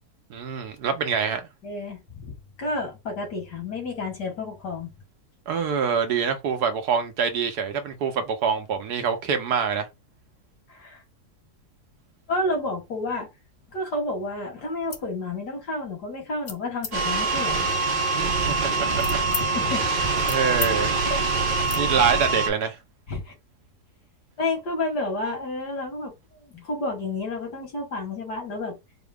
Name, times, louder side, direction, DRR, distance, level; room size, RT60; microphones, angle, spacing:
voice 1, 0.3-1.4 5.5-9.9 18.3-19.2 20.3-20.9 21.8-22.8, right 6 dB, 75° right, 1.4 m, -25 dB
voice 2, 1.6-4.9 10.7-11.0 12.3-13.3 13.7-17.7 19.3-20.1 21.0-21.2 21.6-21.9 23.1-23.3 24.4-26.1 26.5-28.8, left 2 dB, 80° left, 2.3 m, -30 dB
sound 1, 14.8-15.1 15.6-15.9 16.5-16.9 17.6-19.5 19.9-20.7 21.0-21.2 21.6-21.8, left 5 dB, 60° left, 0.4 m, -36 dB
sound 2, 16.9-22.5, right 3 dB, 55° right, 0.6 m, -24 dB
4.7 x 2.0 x 3.5 m
omnidirectional pair, 1.7 m